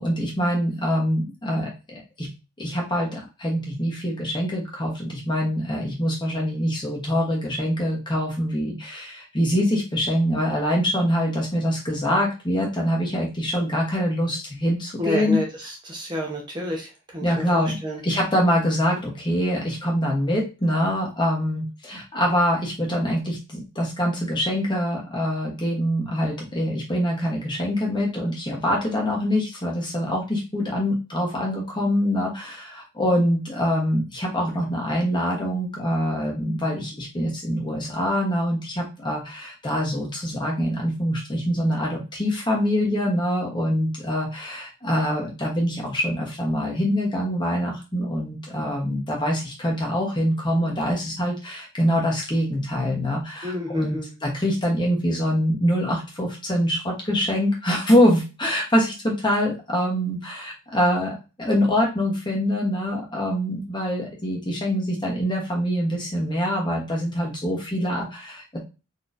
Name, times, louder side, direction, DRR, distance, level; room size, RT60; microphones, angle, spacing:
voice 1, 0.0-2.3 2.6-15.4 17.2-17.7 18.0-68.6, equal, 20° left, -2 dB, 1.0 m, -24 dB
voice 2, 15.0-18.0 53.4-54.1, left 1 dB, 20° right, -2 dB, 0.9 m, -29 dB
4.1 x 3.0 x 2.6 m, 0.30 s
head